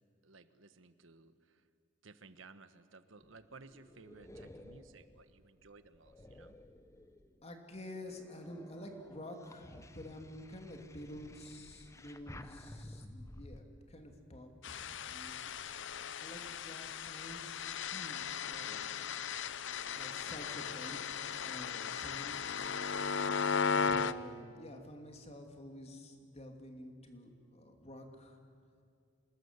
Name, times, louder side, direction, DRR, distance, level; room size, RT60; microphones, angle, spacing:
voice 1, 0.2-1.6 2.0-6.6, right 3 dB, 85° right, 11 dB, 1.3 m, -57 dB
sound 1, 3.2-7.4 7.9-13.6, left 1 dB, 15° left, 1.0 m, -54 dB
voice 2, 7.4-15.5 16.2-17.6 17.9-19.0 19.9-21.0 21.4-22.6 23.6-28.4, left 1 dB, 35° left, 4 dB, 2.8 m, -49 dB
sound 2, 14.6-24.1, left 5 dB, 65° left, 0.7 m, -37 dB
27.0 x 20.0 x 8.2 m, 2.4 s
head